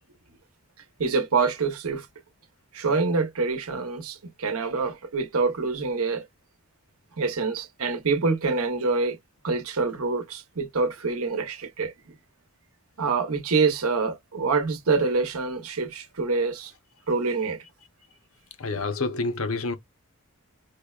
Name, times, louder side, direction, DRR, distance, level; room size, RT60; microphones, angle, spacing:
voice 1, 1.0-2.1 2.7-6.2 7.2-9.2 9.4-11.9 13.0-16.7 17.1-17.6, right 4 dB, 75° right, 0.9 m, -26 dB
voice 2, 18.6-19.7, left 3 dB, 70° left, 0.8 m, -28 dB
5.0 x 2.1 x 2.3 m
head